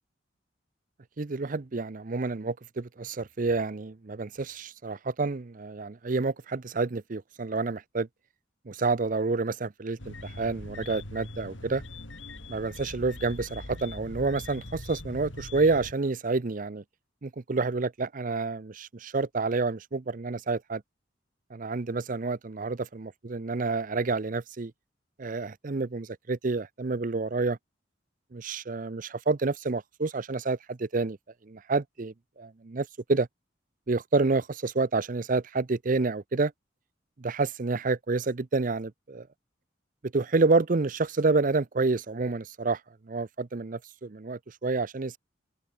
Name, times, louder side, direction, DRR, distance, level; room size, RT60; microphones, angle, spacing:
voice 1, 1.2-8.1 8.7-11.8 12.5-16.8 17.2-20.8 21.5-24.7 25.2-27.6 28.3-31.2 31.4-33.3 33.9-36.5 37.2-39.3 40.0-45.2, right 3 dB, 45° right, 0.6 m, -29 dB
sound 1, 10.0-15.9, left 1 dB, 90° left, 5.8 m, -42 dB
open air
head